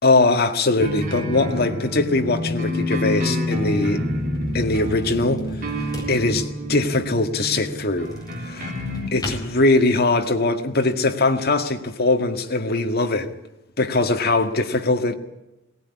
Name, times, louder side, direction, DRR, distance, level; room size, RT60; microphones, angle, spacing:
voice 1, 0.0-4.0 4.5-8.1 8.4-8.7 9.1-13.3 13.8-15.2, left 2 dB, 55° left, 1.9 m, -21 dB
sound 1, 0.8-9.1, left 1 dB, 45° right, 3.5 m, -27 dB
sound 2, 1.6-10.3, left 1 dB, 20° left, 4.2 m, -41 dB
18.5 x 18.5 x 9.7 m
head